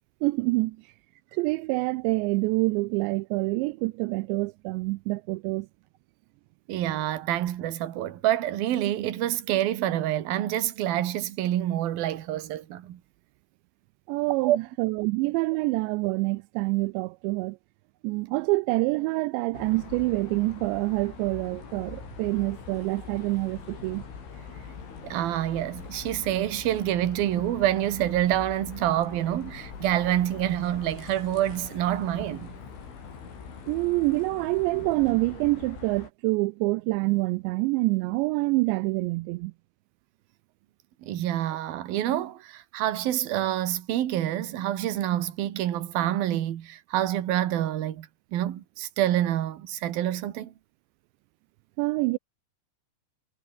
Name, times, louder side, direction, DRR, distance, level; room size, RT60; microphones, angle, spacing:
voice 1, 0.2-0.9 1.3-5.7 14.1-17.6 18.0-24.0 33.7-39.5 51.8-52.2, right 23 dB, 85° right, 2.6 m, -26 dB
voice 2, 6.7-13.0 14.4-14.6 25.0-32.6 41.0-50.5, right 12 dB, 60° right, 3.1 m, -27 dB
sound 1, 19.5-36.1, left 6 dB, 75° left, 8.3 m, -43 dB
omnidirectional pair, 5.6 m